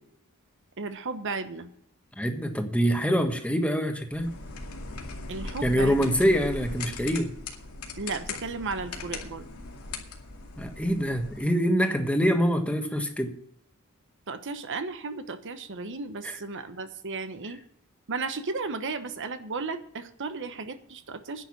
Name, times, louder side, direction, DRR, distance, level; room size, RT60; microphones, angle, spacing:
voice 1, 0.8-1.7 5.3-6.1 8.0-9.4 14.3-17.6 18.1-21.4, right 4 dB, 60° right, 1.0 m, -34 dB
voice 2, 2.2-4.3 5.6-7.3 10.6-13.4 16.2-16.4, equal, 5° left, 1.4 m, -25 dB
sound 1, 4.1-11.4, left 3 dB, 80° left, 2.3 m, -39 dB
10.5 x 6.9 x 8.6 m
head